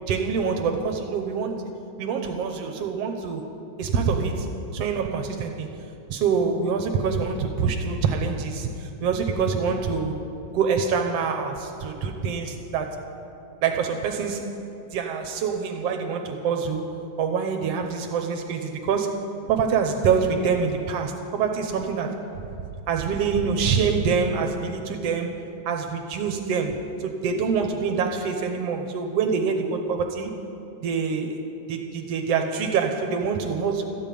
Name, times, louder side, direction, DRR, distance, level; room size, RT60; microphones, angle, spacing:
voice 1, 0.1-1.5 2.0-3.4 3.8-4.5 4.7-5.7 6.1-10.2 10.5-13.0 13.6-14.5 14.9-19.2 19.5-22.2 22.9-30.3 30.8-31.4 31.7-33.8, right 5 dB, 80° right, 4 dB, 1.4 m, -25 dB
13.5 x 8.8 x 9.2 m, 2.7 s
omnidirectional pair, 4.0 m